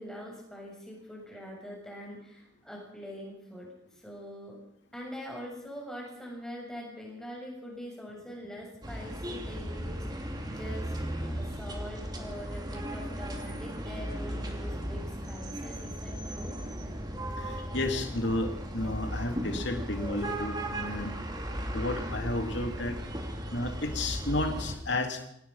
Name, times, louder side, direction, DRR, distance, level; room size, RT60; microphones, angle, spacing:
voice 1, 0.0-4.6 4.9-10.9 11.3-16.6, equal, 5° left, -2 dB, 7.4 m, -43 dB
sound 1, 8.8-24.8, equal, 20° right, 2.9 m, -36 dB
voice 2, 17.4-21.1 21.7-23.0 23.5-25.3, left 2 dB, 60° left, 5 dB, 2.9 m, -32 dB
25.0 x 18.5 x 5.7 m, 0.75 s
head